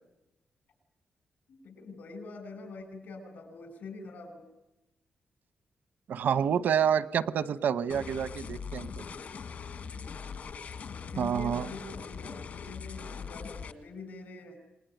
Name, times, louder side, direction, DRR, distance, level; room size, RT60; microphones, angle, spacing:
voice 1, 1.5-4.5 9.9-14.6, left 3 dB, 80° left, 8 dB, 6.3 m, -45 dB
voice 2, 6.1-8.9 11.2-11.7, right 8 dB, 85° right, 14 dB, 1.0 m, -28 dB
sound 1, 7.9-13.7, left 6 dB, 60° left, 1.8 m, -41 dB
27.0 x 20.5 x 9.3 m, 0.95 s
wide cardioid pair, 155°, 3 cm